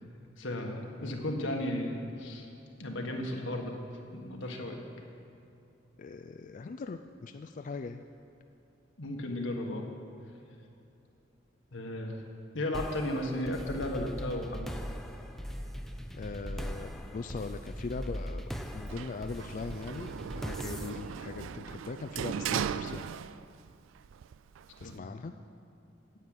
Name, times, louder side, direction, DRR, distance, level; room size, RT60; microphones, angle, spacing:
voice 1, 0.4-2.5 2.8-3.8 4.1-4.8 9.0-9.8 11.7-12.2 12.5-14.7 24.8-25.2, left 1 dB, 85° left, 1 dB, 1.6 m, -34 dB
voice 2, 6.0-8.0 16.1-18.5 18.7-23.1 24.8-25.3, left 4 dB, 45° left, 7 dB, 0.4 m, -40 dB
sound 1, 12.7-22.2, equal, ahead, 0.6 m, -41 dB
Sliding door, 18.9-23.7 24.0-25.0, right 8 dB, 90° right, 0.3 m, -37 dB
9.8 x 9.1 x 8.0 m, 2.7 s
head